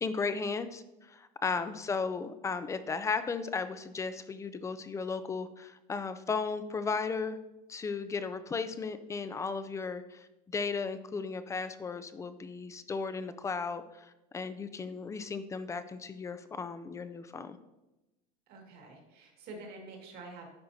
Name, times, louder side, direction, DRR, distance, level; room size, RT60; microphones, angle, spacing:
voice 1, 0.0-7.4 7.7-17.6, left 4 dB, 15° left, 11 dB, 0.3 m, -35 dB
voice 2, 18.5-20.5, right 3 dB, 55° right, 1 dB, 1.9 m, -48 dB
10.5 x 4.4 x 2.7 m, 0.97 s
supercardioid pair, 130°, 19 cm